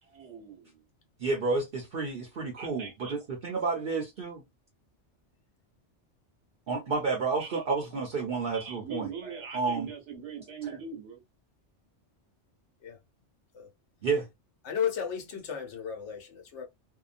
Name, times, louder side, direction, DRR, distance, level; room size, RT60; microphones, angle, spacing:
voice 1, 0.0-0.8 2.6-3.2 3.4-3.6 7.3-7.6 7.9-8.0 8.5-11.2, right 6 dB, 75° right, 1.0 m, -42 dB
voice 2, 1.2-4.4 6.7-9.1 9.5-9.9 14.0-14.2, right 4 dB, 55° right, 0.8 m, -30 dB
voice 3, 14.6-16.7, left 8 dB, 75° left, 1.1 m, -34 dB
2.7 x 2.2 x 2.4 m
omnidirectional pair, 1.2 m